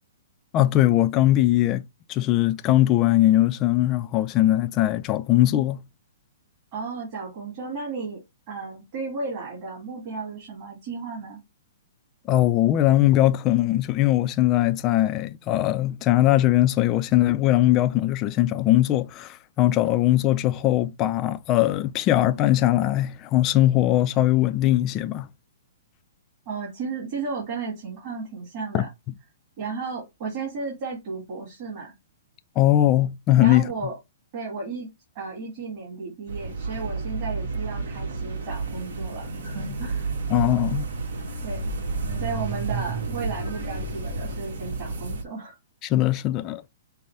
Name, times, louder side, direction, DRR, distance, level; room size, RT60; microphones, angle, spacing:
voice 1, 0.5-5.8 12.3-25.3 28.7-28.8 32.6-33.7 40.3-40.9 45.8-46.6, left 14 dB, 25° left, 0.3 m, -20 dB
voice 2, 6.7-11.4 26.5-28.9 29.6-31.9 33.4-34.0 34.3-34.9 35.1-40.1 41.4-41.7 42.2-45.5, right 4 dB, 35° right, 2.0 m, -34 dB
sound 1, 36.3-45.2, right 4 dB, 65° right, 1.3 m, -31 dB
5.5 x 2.1 x 3.3 m
hypercardioid pair, 160°, 0 cm